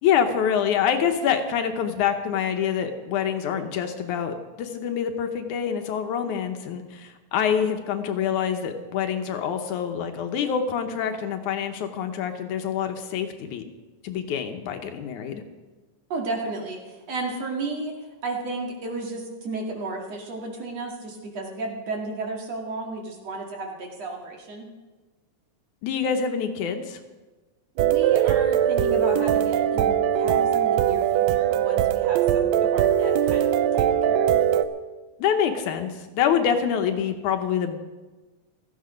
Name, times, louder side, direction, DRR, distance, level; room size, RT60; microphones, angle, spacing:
voice 1, 0.0-13.6 14.0-15.4 25.8-27.0 35.2-37.9, left 8 dB, 75° left, 6 dB, 2.4 m, -26 dB
voice 2, 16.1-17.9 18.2-24.7 27.7-34.4, right 3 dB, 55° right, 0 dB, 3.1 m, -33 dB
sound 1, 27.8-34.6, right 10 dB, 80° right, 1.5 m, -21 dB
16.5 x 13.5 x 5.2 m, 1.2 s
omnidirectional pair, 3.6 m